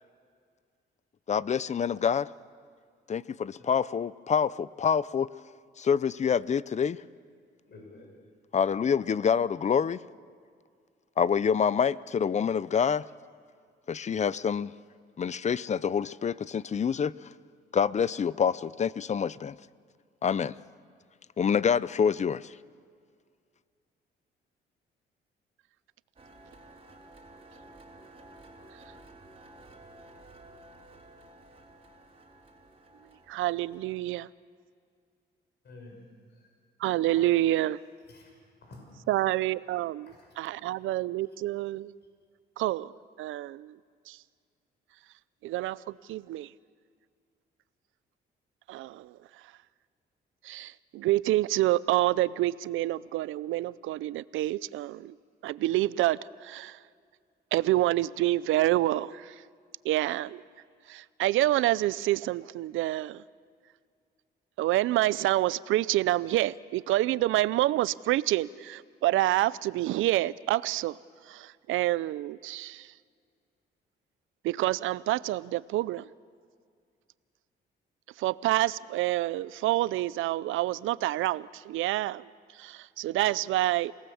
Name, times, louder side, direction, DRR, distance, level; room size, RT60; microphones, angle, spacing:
voice 1, 1.3-2.3 3.1-5.3 5.8-7.0 8.5-10.0 11.2-13.0 13.9-14.7 15.2-17.1 17.7-19.6 20.2-20.5 21.4-22.4, left 7 dB, 35° left, 19 dB, 0.6 m, -26 dB
voice 2, 7.7-8.2 9.0-9.1 10.2-10.3 13.2-13.3 14.6-14.7 20.7-20.8 35.6-36.0 36.3-36.5 37.0-38.3 38.6-38.9 39.5-39.8 40.0-40.3 41.3-41.4 42.9-43.0, left 2 dB, 55° left, 1 dB, 6.5 m, -53 dB
sound 1, 26.2-34.0, right 2 dB, 30° right, 3.6 m, -53 dB
voice 3, 33.3-34.3 36.8-37.8 39.1-40.0 40.4-41.9 42.6-42.9 43.2-43.8 44.1-44.2 45.4-46.5 48.7-49.2 50.4-55.1 55.4-56.8 57.5-59.4 59.8-60.4 60.9-63.2 64.6-71.0 71.3-72.9 74.4-76.1 78.2-82.3 82.5-83.9, right 15 dB, 85° right, 19 dB, 0.5 m, -27 dB
28.5 x 18.5 x 7.1 m, 2.1 s
cardioid pair, 90°, 20 cm